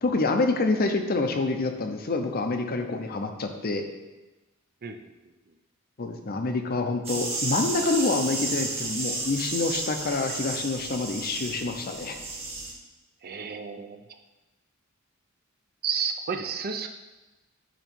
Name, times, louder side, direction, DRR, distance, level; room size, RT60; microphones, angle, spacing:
voice 1, 0.0-3.8 6.0-12.2, left 3 dB, 45° left, 5 dB, 0.6 m, -27 dB
sound 1, 7.0-12.7, right 3 dB, 30° right, 1.4 m, -32 dB
voice 2, 13.2-14.0 15.8-16.9, right 6 dB, 45° right, 6 dB, 0.5 m, -31 dB
9.0 x 3.0 x 4.5 m, 1.1 s
head